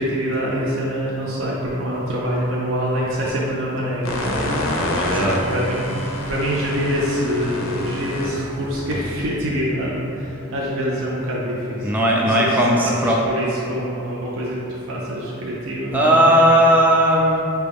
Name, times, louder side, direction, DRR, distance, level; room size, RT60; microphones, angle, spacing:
voice 1, 0.0-16.3, equal, 80° right, -6 dB, 0.6 m, -25 dB
sound 1, 4.0-10.1, left 1 dB, 90° left, 0.5 m, -28 dB
voice 2, 4.8-5.3 11.8-13.2 15.9-17.4, equal, 10° right, -3 dB, 0.5 m, -17 dB
5.8 x 2.3 x 3.5 m, 2.8 s
head